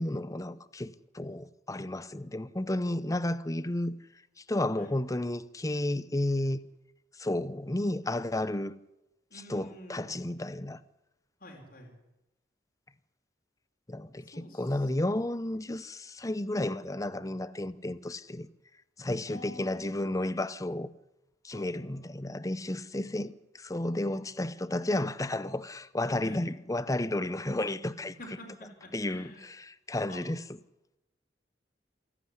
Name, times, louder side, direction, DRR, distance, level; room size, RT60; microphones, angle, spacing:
voice 1, 0.0-4.0 4.5-6.6 7.2-8.7 9.3-10.8 13.9-18.5 19.0-20.9 21.4-28.1 28.9-30.4, left 1 dB, 20° left, 0.8 m, -32 dB
voice 2, 9.3-10.3 11.4-11.9 14.3-14.8 19.3-20.1 21.5-21.9 26.2-26.4 28.2-29.5 30.1-30.2, equal, 55° left, 5.2 m, -48 dB
27.0 x 11.0 x 9.8 m
head